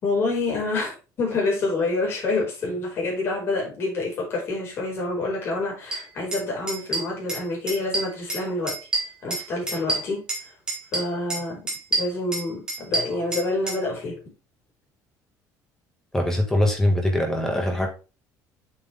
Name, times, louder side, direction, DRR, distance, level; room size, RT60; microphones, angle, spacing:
voice 1, 0.0-8.8 9.2-10.2 10.9-11.6 12.0-14.2, left 2 dB, 35° left, 5.0 m, -27 dB
sound 1, 5.9-6.0 6.3-6.4 6.7-7.4 7.7-8.4 8.7-10.4 10.7-11.4 11.7-13.8, right 2 dB, 10° right, 3.8 m, -27 dB
voice 2, 16.1-17.9, left 1 dB, 5° left, 1.8 m, -22 dB
7.6 x 6.8 x 3.5 m
cardioid pair, 180°, 7 cm